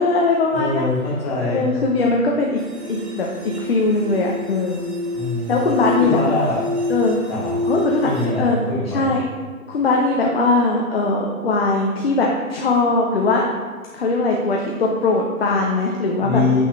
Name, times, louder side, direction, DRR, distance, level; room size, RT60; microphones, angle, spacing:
voice 1, 0.0-0.9 1.5-2.6 2.9-4.8 5.5-6.2 6.9-7.2 7.7-8.1 8.4-8.6 8.9-9.2 9.7-13.5 13.9-16.6, left 3 dB, 45° left, -1 dB, 0.7 m, -20 dB
voice 2, 0.5-1.7 5.1-5.6 6.0-6.6 7.3-7.6 8.0-9.2 16.2-16.6, left 3 dB, 25° left, -6 dB, 1.7 m, -23 dB
sound 1, 2.6-8.3, left 1 dB, 50° right, 1.3 m, -27 dB
8.4 x 3.6 x 3.4 m, 1.5 s
figure-of-eight pair, 135°, 44 cm